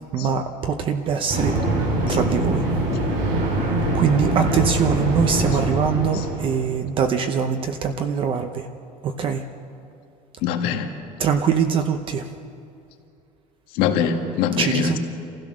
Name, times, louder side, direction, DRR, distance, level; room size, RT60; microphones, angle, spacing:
voice 1, 0.1-2.6 3.1-3.2 3.9-8.7 9.0-9.4 11.2-12.3 14.6-15.0, right 6 dB, 35° right, 7 dB, 0.8 m, -23 dB
sound 1, 1.3-6.7, right 1 dB, 65° right, 7.3 m, -23 dB
voice 2, 10.4-10.9 13.7-15.0, left 7 dB, 90° left, 4 dB, 1.9 m, -23 dB
27.5 x 15.5 x 6.4 m, 2.6 s
cardioid pair, 180°, 15 cm